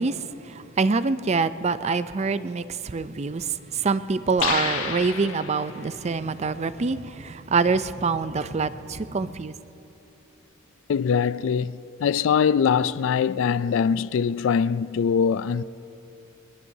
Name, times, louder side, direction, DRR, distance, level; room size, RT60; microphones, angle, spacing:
voice 1, 0.0-3.5 3.7-9.5, right 4 dB, 30° right, 0.4 m, -25 dB
sound 1, 4.4-5.9, left 6 dB, 85° left, 1.2 m, -29 dB
voice 2, 10.9-11.7 12.0-15.6, left 6 dB, 65° left, 0.3 m, -22 dB
23.5 x 20.5 x 2.7 m
head